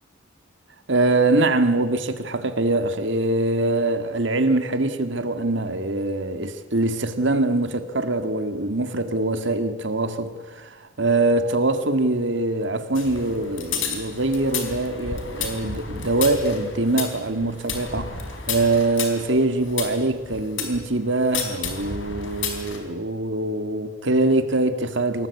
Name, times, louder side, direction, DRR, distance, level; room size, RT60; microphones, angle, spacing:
voice 1, 0.9-18.2 18.5-25.3, right 2 dB, 65° right, 1.9 m, -23 dB
sound 1, 12.9-20.8 21.3-22.8, left 6 dB, 70° left, 4.3 m, -32 dB
26.0 x 18.5 x 8.4 m
head